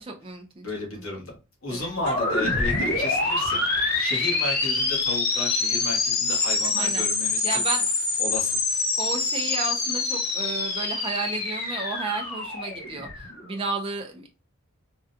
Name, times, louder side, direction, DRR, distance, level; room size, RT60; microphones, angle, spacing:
voice 1, 0.0-0.7 0.9-1.3 1.7-1.9 6.7-7.0 7.4-7.9 9.0-14.3, right 4 dB, 25° right, 2 dB, 0.4 m, -33 dB
voice 2, 0.6-1.4 1.6-3.6 3.9-7.4 8.2-8.6, left 2 dB, 65° left, 0 dB, 1.3 m, -33 dB
sound 1, 1.8-4.4, left 1 dB, 90° left, 1.7 m, -40 dB
sound 2, 1.8-13.5, left 3 dB, 45° left, 1.1 m, -26 dB
3.6 x 2.2 x 2.6 m, 0.28 s
head